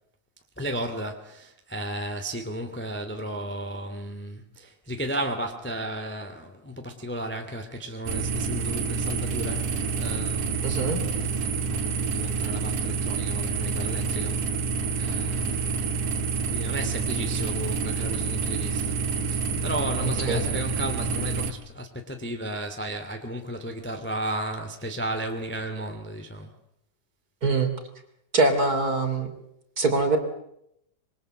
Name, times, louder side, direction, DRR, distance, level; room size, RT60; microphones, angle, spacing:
voice 1, 0.6-14.4 15.0-15.6 16.5-26.5, right 1 dB, 5° left, 5 dB, 1.8 m, -34 dB
sound 1, 8.1-21.5, right 4 dB, 70° right, 3.4 m, -28 dB
voice 2, 10.6-11.0 20.2-20.4 27.4-27.7 28.3-29.3 29.8-30.2, right 3 dB, 30° right, 6 dB, 3.3 m, -23 dB
26.5 x 24.0 x 7.8 m, 0.77 s
omnidirectional pair, 3.7 m